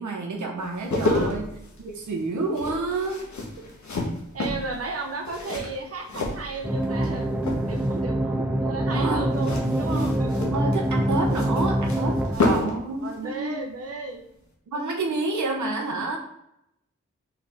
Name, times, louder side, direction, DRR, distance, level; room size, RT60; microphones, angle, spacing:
voice 1, 0.0-1.5 1.8-3.2 8.9-9.3 9.6-10.0 10.5-13.6 14.7-16.2, right 3 dB, 90° right, 1 dB, 0.8 m, -29 dB
sound 1, 0.6-7.1 7.4-8.0 9.3-12.8 13.1-13.3, left 2 dB, 70° left, 1.1 m, -30 dB
voice 2, 1.0-1.3 4.3-7.3 7.7-10.3 12.3-12.7 13.0-14.2, right 3 dB, 55° right, 3 dB, 0.7 m, -34 dB
sound 2, 6.6-12.4, right 1 dB, 5° right, 0.5 m, -25 dB
4.0 x 3.5 x 3.4 m, 0.78 s
cardioid pair, 50°, 29 cm